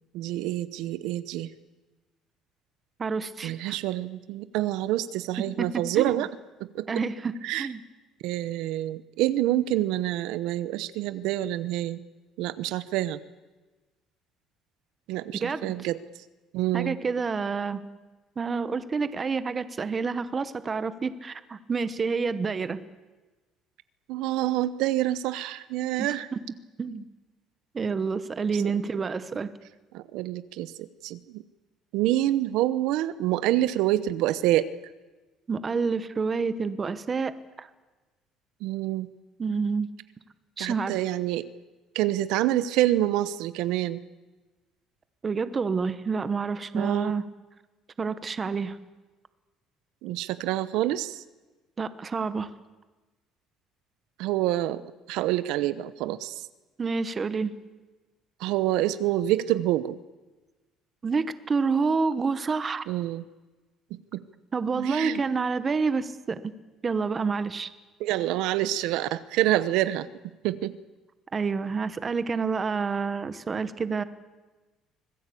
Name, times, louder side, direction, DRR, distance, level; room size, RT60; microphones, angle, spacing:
voice 1, 0.1-1.5 3.4-6.3 6.6-7.0 7.4-7.7 8.2-12.0 12.4-13.2 15.1-16.0 16.5-16.9 24.1-26.3 29.9-31.4 31.9-34.7 38.6-39.1 40.6-41.5 41.9-44.0 46.7-47.1 50.0-51.2 54.2-54.8 55.1-56.3 58.4-60.0 62.9-63.2 63.9-64.2 64.8-65.2 68.0-70.1 70.4-70.7, right 14 dB, 70° right, 15 dB, 1.0 m, -27 dB
voice 2, 3.0-3.8 5.6-6.2 6.9-7.8 15.4-15.7 16.7-17.8 18.4-22.8 26.0-26.4 26.8-27.1 27.7-29.5 35.5-37.7 39.4-39.9 40.6-41.0 45.2-47.2 48.0-48.8 51.8-52.5 56.8-57.5 61.0-62.8 64.5-66.4 66.8-67.7 71.3-74.0, right 5 dB, 20° right, 13 dB, 1.0 m, -28 dB
25.5 x 20.0 x 8.5 m, 1.2 s
cardioid pair, 175°, 0 cm